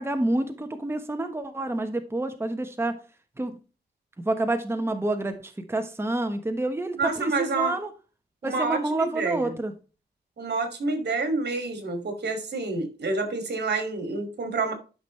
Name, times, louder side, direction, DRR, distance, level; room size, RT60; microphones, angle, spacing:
voice 1, 0.0-2.9 3.4-3.5 4.2-7.9 8.4-9.7, right 2 dB, 15° right, 6 dB, 1.2 m, -28 dB
voice 2, 7.0-7.8 8.4-9.5 10.4-14.7, right 3 dB, 70° right, 7 dB, 2.7 m, -28 dB
12.0 x 6.1 x 3.3 m, 0.33 s
wide cardioid pair, 95°, 18 cm